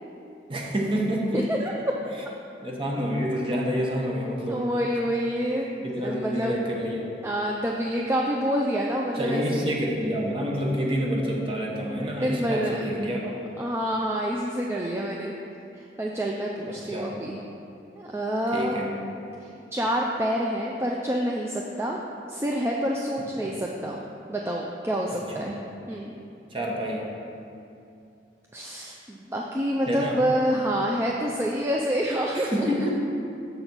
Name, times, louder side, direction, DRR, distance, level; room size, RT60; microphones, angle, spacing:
voice 1, 0.5-1.7 2.6-4.7 5.8-7.2 9.1-13.3 16.7-17.2 18.5-18.9 23.4-23.6 25.1-25.6 26.5-27.1 29.9-30.2 32.3-32.9, equal, 30° right, -2 dB, 0.9 m, -28 dB
voice 2, 1.3-1.7 4.2-6.6 7.2-9.7 12.2-12.7 13.6-15.3 15.7-17.4 18.0-18.8 19.4-22.0 22.3-24.0 24.3-25.5 25.9-26.1 28.5-32.7, equal, 15° right, -1 dB, 0.4 m, -27 dB
6.7 x 4.0 x 6.0 m, 2.6 s
head